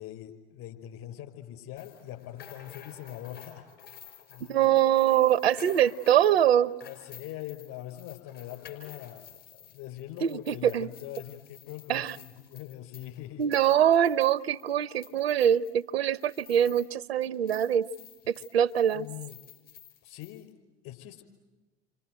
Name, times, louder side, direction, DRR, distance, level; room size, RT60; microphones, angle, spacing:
voice 1, 0.0-3.7 4.3-4.7 6.3-6.4 6.8-13.4 18.9-19.4 20.0-20.5 20.8-21.2, left 13 dB, 50° left, 5 dB, 5.4 m, -43 dB
sound 1, 1.8-17.0 17.2-20.4, left 9 dB, 65° left, 6.0 m, -52 dB
voice 2, 4.5-6.7 10.2-10.9 11.9-12.2 13.4-17.9 18.3-19.1, right 10 dB, 75° right, 19 dB, 0.8 m, -24 dB
29.5 x 25.5 x 7.8 m, 1.2 s
figure-of-eight pair, 75°, 31 cm